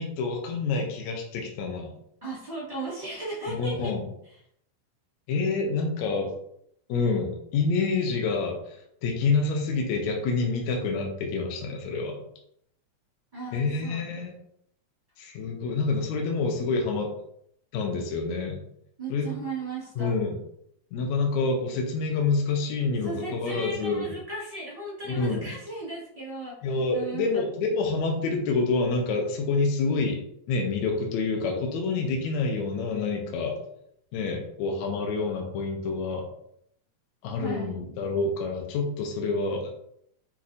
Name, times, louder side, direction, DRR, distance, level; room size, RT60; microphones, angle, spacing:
voice 1, 0.0-1.9 3.5-4.1 5.3-6.3 6.9-12.2 13.5-14.4 15.2-17.1 17.7-18.6 19.1-19.4 20.0-20.4 20.9-24.1 25.1-25.5 26.6-30.2 30.5-33.6 34.1-36.3 37.2-39.7, left 4 dB, 75° left, 1 dB, 1.9 m, -27 dB
voice 2, 2.2-3.9 13.3-14.0 19.0-20.1 23.0-26.6 26.9-27.2 37.4-37.8, right 2 dB, 25° right, -8 dB, 0.7 m, -36 dB
6.1 x 2.9 x 2.6 m, 0.70 s
omnidirectional pair, 3.5 m